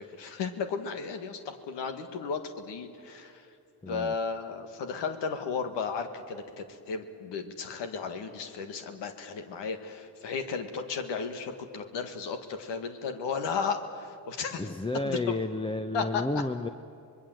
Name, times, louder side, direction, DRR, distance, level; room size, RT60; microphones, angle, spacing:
voice 1, 0.0-3.5 3.9-14.6 15.0-15.3 15.9-16.2, left 5 dB, 85° left, 7 dB, 1.7 m, -34 dB
voice 2, 3.8-4.1 14.5-16.7, left 2 dB, 10° left, 9 dB, 0.8 m, -31 dB
25.5 x 20.5 x 7.8 m, 2.6 s
supercardioid pair, 65°, 42 cm